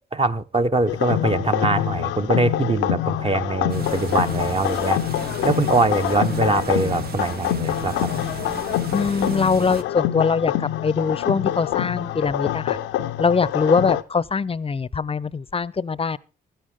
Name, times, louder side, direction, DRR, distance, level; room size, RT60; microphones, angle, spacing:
voice 1, 0.1-5.0 5.4-8.1, right 3 dB, 30° right, 1.1 m, -22 dB
sound 1, 0.9-14.0, left 13 dB, 80° left, 0.6 m, -25 dB
sound 2, 3.7-9.8, right 7 dB, 55° right, 0.8 m, -35 dB
voice 2, 8.9-12.8 13.2-16.2, left 5 dB, 30° left, 0.6 m, -22 dB
16.0 x 12.5 x 3.7 m
hypercardioid pair, 45°, 20 cm